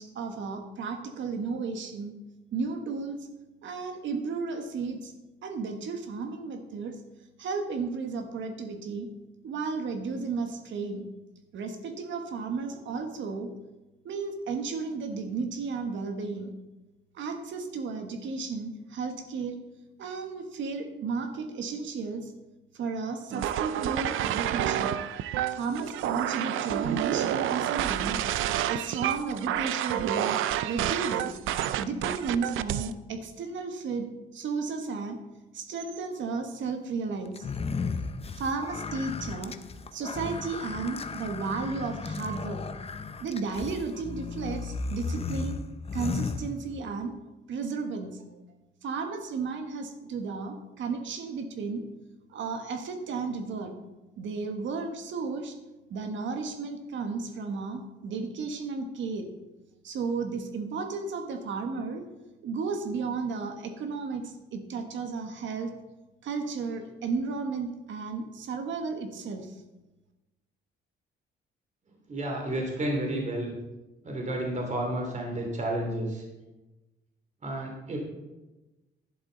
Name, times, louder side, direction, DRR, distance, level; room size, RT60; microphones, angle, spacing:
voice 1, 0.0-2.1 2.5-3.3 3.6-5.1 5.4-7.0 7.4-9.1 9.4-11.1 11.5-13.5 14.0-16.5 17.1-19.6 20.0-22.3 22.7-25.0 25.5-28.2 28.7-30.3 30.6-31.3 31.7-35.2 35.5-37.5 38.3-39.5 39.9-42.6 43.2-45.6 45.9-47.2 47.5-48.4 48.8-51.9 52.3-53.7 54.2-55.6 55.9-59.3 59.8-62.1 62.4-65.7 66.2-69.6, right 4 dB, 70° right, 6 dB, 1.4 m, -33 dB
sound 1, 23.3-32.9, right 11 dB, 85° right, 0.5 m, -29 dB
sound 2, 37.3-47.0, left 4 dB, 30° left, 0.8 m, -35 dB
voice 2, 72.1-73.5 74.0-76.2 77.4-78.0, right 1 dB, 35° right, 1 dB, 2.8 m, -31 dB
11.5 x 11.0 x 4.0 m, 1.1 s
cardioid pair, 90°, 20 cm